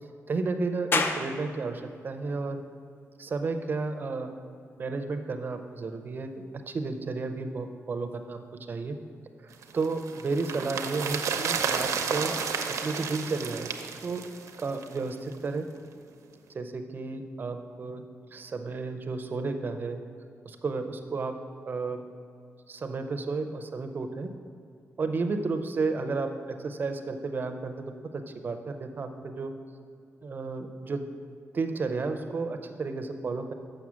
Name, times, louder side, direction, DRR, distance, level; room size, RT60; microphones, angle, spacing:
voice 1, 0.3-2.6 3.2-4.3 4.8-8.4 8.7-9.0 9.4-9.5 9.7-12.3 12.7-14.2 14.6-15.7 16.5-18.0 18.3-20.0 20.5-21.4 21.7-22.0 22.7-24.3 25.0-29.5 30.2-31.1 31.5-33.5, right 3 dB, 40° right, 8 dB, 0.5 m, -32 dB
sound 1, 0.9-14.0, left 3 dB, 45° left, 0.5 m, -40 dB
sound 2, 9.6-15.0 15.3-15.4, right 6 dB, 85° right, 0.6 m, -32 dB
6.4 x 6.2 x 7.3 m, 2.3 s
wide cardioid pair, 155°, 5 cm